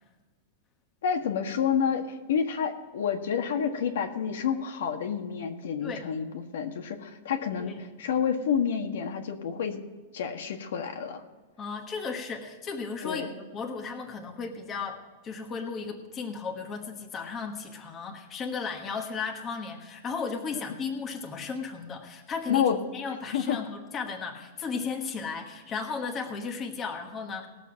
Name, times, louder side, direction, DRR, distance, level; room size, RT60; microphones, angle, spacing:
voice 1, 1.0-9.8 10.1-11.2 13.0-13.3 22.5-22.8 23.3-23.6, left 7 dB, 75° left, 4 dB, 1.6 m, -29 dB
voice 2, 11.6-22.7 22.9-27.5, left 5 dB, 20° left, 2 dB, 1.3 m, -35 dB
19.0 x 7.1 x 4.6 m, 1.3 s
supercardioid pair, 170°, 0 cm